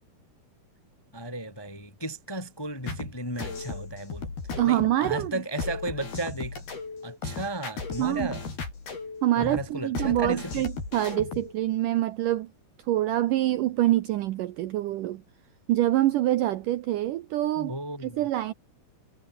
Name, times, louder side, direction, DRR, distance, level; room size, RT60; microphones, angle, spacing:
voice 1, 1.1-4.3 4.6-6.6 7.0-8.4 9.4-10.6 17.5-18.2, right 1 dB, 10° left, 1.3 m, -34 dB
sound 1, 2.9-11.5, left 4 dB, 70° left, 9.4 m, -36 dB
voice 2, 4.6-5.3 8.0-8.3 9.2-12.5 12.9-15.2 15.7-17.8 18.0-18.5, right 14 dB, 75° right, 2.0 m, -25 dB
omnidirectional pair, 4.6 m